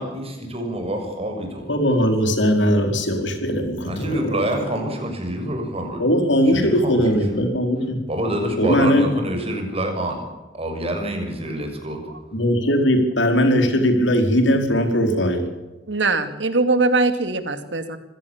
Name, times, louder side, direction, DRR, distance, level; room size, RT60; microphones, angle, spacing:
voice 1, 0.0-2.0 3.9-7.4 8.1-10.2 10.5-12.0, right 1 dB, 35° right, 4 dB, 6.7 m, -27 dB
voice 2, 1.7-4.2 6.0-8.0 8.6-9.1 12.3-15.4, equal, 85° left, 5 dB, 4.5 m, -19 dB
voice 3, 15.9-18.0, right 3 dB, 75° right, 9 dB, 2.5 m, -21 dB
26.0 x 16.5 x 7.2 m, 1.1 s
head